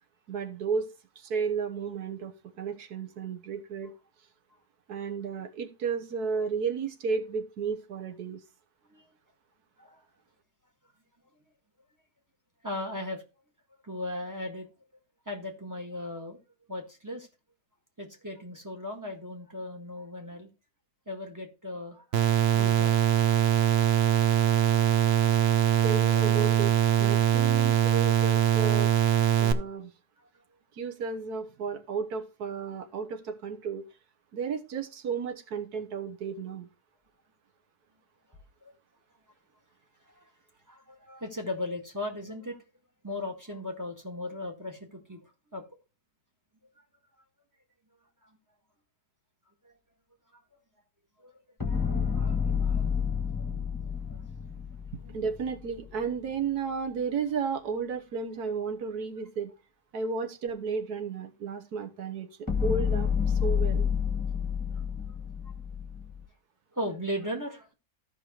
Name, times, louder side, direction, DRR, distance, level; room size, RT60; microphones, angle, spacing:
voice 1, 0.3-0.9 1.2-3.9 4.9-8.4 25.8-26.7 27.0-28.9 29.4-29.9 30.7-33.8 34.3-36.7 55.1-59.5 59.9-63.9, right 5 dB, 85° right, 5 dB, 1.5 m, -33 dB
voice 2, 12.6-13.2 13.8-14.7 15.2-16.4 16.7-17.3 18.0-20.5 21.0-22.0 22.5-23.0 38.6-38.7 40.1-40.3 40.7-42.6 43.0-45.2 45.5-45.6 48.2-48.3 49.6-49.7 51.2-52.9 53.4-53.5 54.1-54.2 55.0-55.2 64.9-65.0 66.7-67.7, left 1 dB, 10° right, 2 dB, 1.7 m, -37 dB
sound 1, 22.1-29.5, right 10 dB, 55° right, 0.8 m, -22 dB
sound 2, 51.6-55.9 62.5-66.2, left 7 dB, 15° left, 1.9 m, -29 dB
15.0 x 5.3 x 3.0 m, 0.29 s
omnidirectional pair, 1.6 m